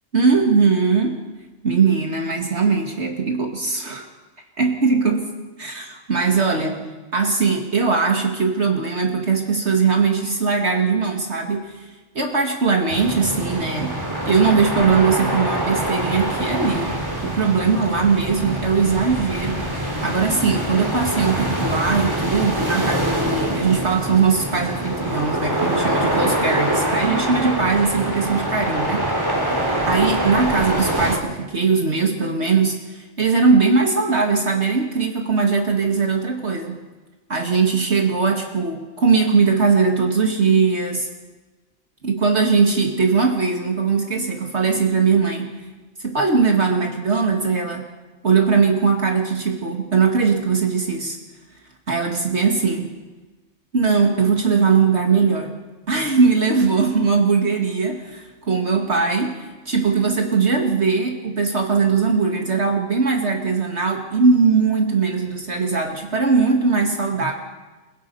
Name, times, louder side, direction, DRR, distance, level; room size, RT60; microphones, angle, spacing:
voice 1, 0.1-1.2 1.6-4.1 4.6-5.3 5.6-11.8 12.2-13.9 14.2-16.9 17.2-19.7 20.0-29.1 29.9-36.8 37.3-41.1 42.0-45.5 46.0-47.9 48.2-51.2 51.9-52.9 53.7-55.5 55.9-67.3, right 5 dB, 60° right, 2 dB, 2.3 m, -20 dB
sound 1, 12.9-31.2, right 1 dB, 15° right, 3.6 m, -24 dB
29.0 x 22.0 x 5.5 m, 1.3 s
omnidirectional pair, 1.3 m